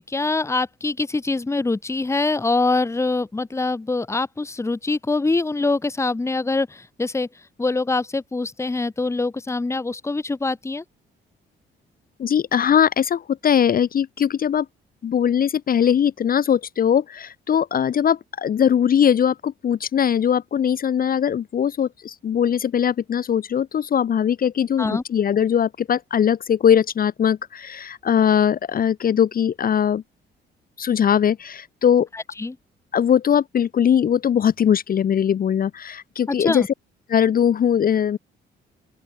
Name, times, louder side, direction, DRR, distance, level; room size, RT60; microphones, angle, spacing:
voice 1, 0.0-7.3 7.6-10.8 24.8-25.0 32.1-32.6 36.3-36.7, left 3 dB, 15° left, 1.0 m, -24 dB
voice 2, 12.2-14.7 15.0-30.0 30.8-32.1 32.9-36.6 37.1-38.2, left 8 dB, 45° left, 0.8 m, -20 dB
open air
cardioid pair, 90°, 20 cm